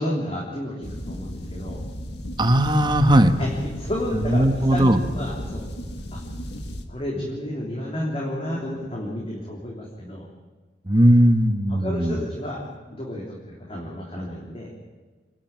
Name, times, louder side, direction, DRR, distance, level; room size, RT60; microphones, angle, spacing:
voice 1, 0.0-1.8 3.4-5.7 6.1-6.2 6.9-10.3 11.7-14.7, left 1 dB, 35° left, -3 dB, 3.4 m, -31 dB
sound 1, 0.8-6.8, equal, 65° left, 2.0 m, -34 dB
voice 2, 2.4-3.3 4.3-5.0 10.9-12.1, right 1 dB, 25° right, 8 dB, 1.4 m, -18 dB
27.0 x 12.0 x 9.0 m, 1.4 s
head